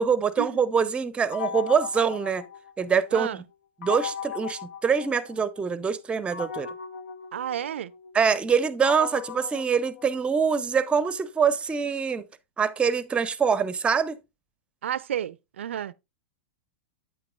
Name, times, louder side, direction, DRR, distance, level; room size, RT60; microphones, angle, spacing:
voice 1, 0.0-2.4 2.8-3.4 3.8-6.7 8.1-12.2 12.6-14.2, right 6 dB, 15° right, 0.6 m, -24 dB
sound 1, 1.3-3.1 3.8-5.6 6.3-10.6, left 8 dB, 70° left, 0.6 m, -38 dB
voice 2, 7.3-7.9 14.8-15.9, right 10 dB, 75° right, 0.4 m, -31 dB
8.7 x 7.7 x 2.4 m
hypercardioid pair, 105°, 7 cm